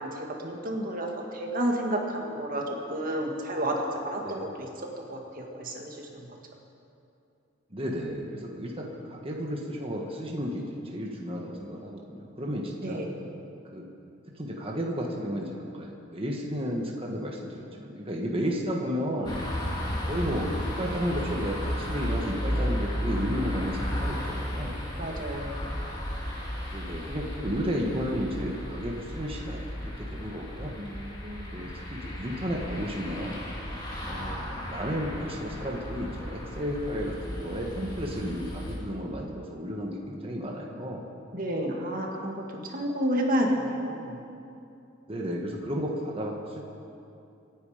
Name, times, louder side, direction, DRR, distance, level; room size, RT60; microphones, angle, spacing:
voice 1, 0.0-4.7 5.0-6.3 12.8-13.3 25.0-25.7 30.8-31.7 41.3-44.2, equal, 45° right, 1 dB, 2.0 m, -31 dB
voice 2, 4.2-4.5 7.7-13.0 13.7-13.9 14.4-19.4 20.1-24.8 26.7-30.7 31.5-33.4 34.1-41.1 45.1-46.6, equal, 30° right, -1 dB, 1.5 m, -33 dB
sound 1, 19.2-38.8, equal, 20° left, 2.7 m, -34 dB
26.5 x 9.6 x 5.1 m, 2.7 s
head